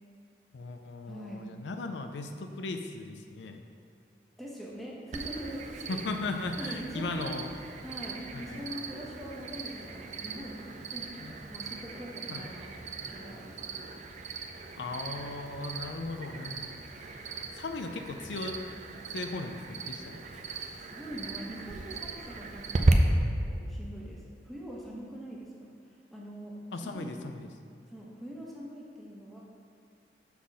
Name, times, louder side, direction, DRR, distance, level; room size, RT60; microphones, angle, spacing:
voice 1, 0.5-3.6 5.9-7.5 8.3-8.6 11.2-11.3 12.3-12.5 14.8-17.1 17.5-18.6 19.1-20.2 26.7-27.5, left 3 dB, 85° left, 6 dB, 0.5 m, -37 dB
voice 2, 1.1-1.5 4.4-6.0 6.6-7.4 7.8-13.6 20.8-22.7 23.1-27.1 27.9-29.4, equal, ahead, -5 dB, 1.1 m, -43 dB
Cricket, 5.1-22.9, right 3 dB, 40° right, 0.5 m, -37 dB
5.8 x 4.2 x 6.2 m, 2.4 s
head